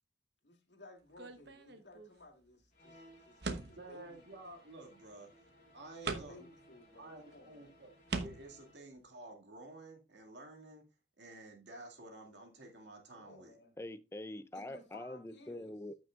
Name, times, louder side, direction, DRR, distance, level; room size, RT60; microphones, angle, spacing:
voice 1, 0.4-4.2 6.0-7.8 13.2-13.8 14.5-15.8, left 1 dB, 85° left, 2.4 m, -57 dB
sound 1, 1.2-2.1 3.4-3.9 5.2-5.3 6.0-6.5 7.3-7.4 8.1-8.6, right 3 dB, 70° right, 1.0 m, -40 dB
sound 2, 2.7-8.9, equal, 45° left, 4.7 m, -62 dB
voice 2, 3.8-5.3 5.7-6.5 7.0-7.9 8.2-10.8 11.2-13.6, right 2 dB, 85° right, 2.2 m, -51 dB
voice 3, 13.8-16.1, left 1 dB, 15° left, 0.4 m, -45 dB
14.0 x 6.1 x 2.4 m
head